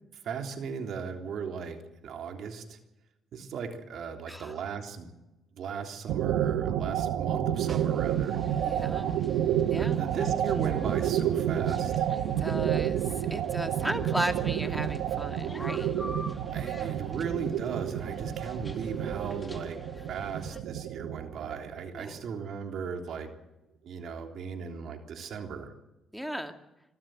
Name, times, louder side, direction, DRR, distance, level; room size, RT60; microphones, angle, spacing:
voice 1, 0.2-1.8 2.0-2.8 3.3-5.1 5.6-8.4 9.8-12.1 16.5-19.8 20.1-23.3 23.8-25.7, right 6 dB, 70° right, 5 dB, 3.4 m, -37 dB
sound 1, 6.1-22.2, right 10 dB, 85° right, 1.1 m, -30 dB
sound 2, 7.5-20.6, left 2 dB, 15° left, 2.2 m, -46 dB
Snare drum, 7.7-8.6 13.0-13.1, right 6 dB, 50° right, 1.1 m, -46 dB
voice 2, 8.6-9.2 9.7-10.0 12.1-15.9 21.9-22.2 26.1-26.6, equal, ahead, 6 dB, 2.3 m, -36 dB
26.5 x 13.5 x 7.8 m, 0.96 s
cardioid pair, 90°, 0 cm